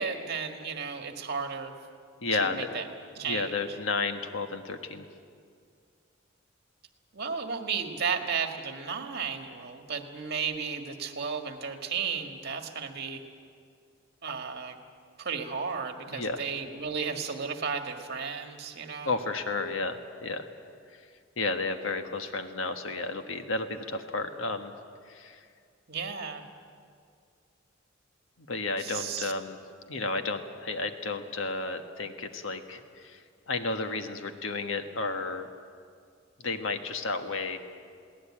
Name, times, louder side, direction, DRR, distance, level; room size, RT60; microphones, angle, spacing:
voice 1, 0.0-1.7 2.4-2.9 3.2-3.8 7.1-13.2 14.2-14.8 15.2-19.1 25.9-26.4 28.8-29.3, right 6 dB, 55° right, 5 dB, 1.8 m, -34 dB
voice 2, 2.2-2.8 3.2-5.0 16.1-16.4 19.0-20.5 21.4-24.7 25.1-25.4 28.4-29.6 29.9-33.2 33.5-35.5 36.4-37.6, left 3 dB, 80° left, 7 dB, 1.4 m, -32 dB
22.0 x 17.0 x 8.8 m, 2.3 s
head